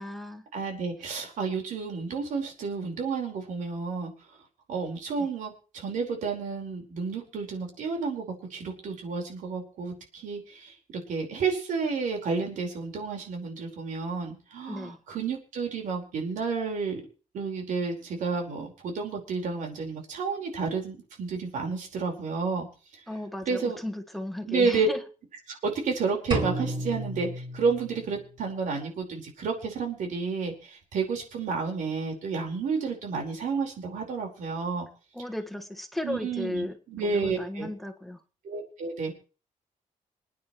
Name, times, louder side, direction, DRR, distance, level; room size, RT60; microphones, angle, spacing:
voice 1, 0.0-0.4 14.7-15.0 23.1-25.0 35.1-36.8 37.0-38.2, left 1 dB, ahead, 5 dB, 1.6 m, -35 dB
voice 2, 0.5-4.1 4.7-8.2 8.5-10.7 11.1-17.0 17.3-22.7 23.5-23.8 24.4-24.9 25.5-34.9 36.0-37.7 38.4-39.1, right 4 dB, 80° right, 2 dB, 4.7 m, -31 dB
sound 1, 26.3-28.3, right 2 dB, 40° right, 5.4 m, -32 dB
26.5 x 9.7 x 3.2 m, 0.36 s
cardioid pair, 145°, 13 cm